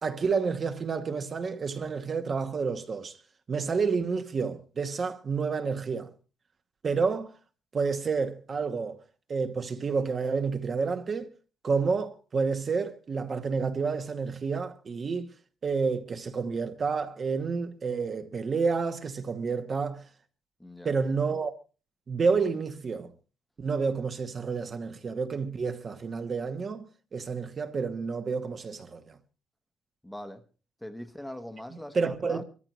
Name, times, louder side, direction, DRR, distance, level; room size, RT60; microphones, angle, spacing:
voice 1, 0.0-3.1 3.5-6.1 6.8-7.3 7.7-9.0 9.3-11.3 11.6-15.3 15.6-20.0 20.8-21.5 22.1-23.1 23.6-29.2 31.9-32.4, right 5 dB, 30° right, 1.0 m, -29 dB
voice 2, 20.6-20.9 30.0-30.4 30.8-32.4, left 1 dB, 5° left, 1.0 m, -41 dB
24.5 x 13.5 x 3.0 m
cardioid pair, 155°, 0 cm